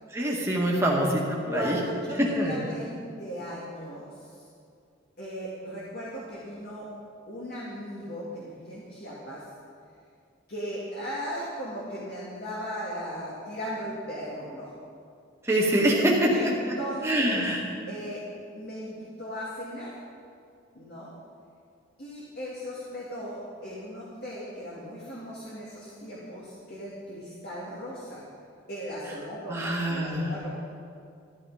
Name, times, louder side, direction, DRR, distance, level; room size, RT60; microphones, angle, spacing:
voice 1, 0.1-1.8 2.4-2.5 15.5-16.5 17.0-17.6 29.5-30.3, right 1 dB, 15° right, -4 dB, 2.0 m, -25 dB
voice 2, 1.4-4.5 5.2-6.9 7.3-9.5 10.5-14.7 16.3-17.5 17.9-18.2 18.5-19.9 20.7-21.1 22.0-28.2 28.7-30.5, equal, 50° left, -7 dB, 2.4 m, -37 dB
13.0 x 12.5 x 5.1 m, 2.4 s
head